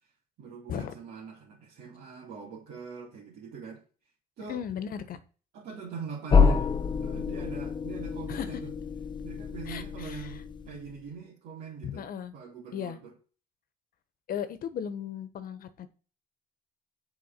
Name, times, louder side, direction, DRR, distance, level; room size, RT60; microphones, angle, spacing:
voice 1, 0.4-3.8 4.4-4.6 5.5-6.7 7.0-8.7 9.2-12.1 12.3-13.1, right 5 dB, 70° right, 2.7 m, -42 dB
voice 2, 4.5-5.2 8.3-8.5 9.7-10.3 11.8-12.3 12.7-13.0 14.3-15.9, left 8 dB, 55° left, 1.2 m, -36 dB
sound 1, 6.3-11.0, left 5 dB, 25° left, 1.0 m, -27 dB
7.1 x 4.8 x 6.8 m
cardioid pair, 110°, 17 cm